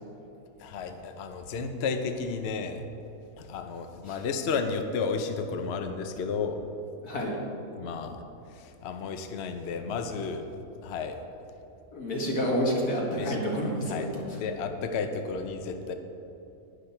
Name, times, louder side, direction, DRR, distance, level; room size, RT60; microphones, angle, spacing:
voice 1, 0.6-2.8 3.4-6.6 7.8-8.2 8.5-10.5 10.8-11.2 13.2-13.4 13.9-14.1 14.4-15.9, left 5 dB, 55° left, 6 dB, 0.9 m, -32 dB
voice 2, 7.0-7.4 11.9-14.4, equal, 90° left, -2 dB, 2.5 m, -29 dB
11.5 x 10.0 x 4.4 m, 2.8 s
omnidirectional pair, 1.6 m